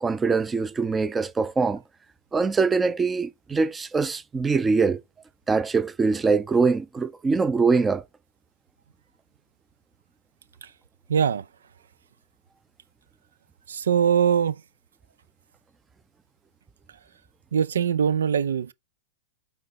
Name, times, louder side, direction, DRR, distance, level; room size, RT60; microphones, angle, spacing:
voice 1, 0.0-1.8 2.3-5.0 5.5-8.0, right 4 dB, 15° right, 0.6 m, -23 dB
voice 2, 11.1-11.4 13.7-14.6 17.5-18.7, right 8 dB, 75° right, 0.4 m, -22 dB
7.7 x 4.2 x 4.1 m
hypercardioid pair, 105°, 0 cm